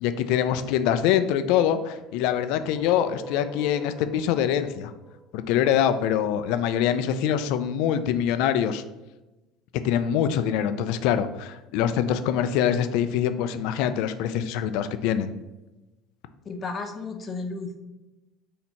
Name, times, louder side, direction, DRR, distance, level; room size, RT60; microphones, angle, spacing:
voice 1, 0.0-4.9 5.3-8.8 9.8-15.3, left 9 dB, 70° left, 11 dB, 0.4 m, -24 dB
sound 1, 1.9-6.0, equal, 5° right, 1.0 m, -44 dB
voice 2, 16.4-17.8, left 3 dB, 30° left, 6 dB, 0.6 m, -33 dB
4.2 x 2.8 x 4.5 m, 1.0 s
supercardioid pair, 120°, 0 cm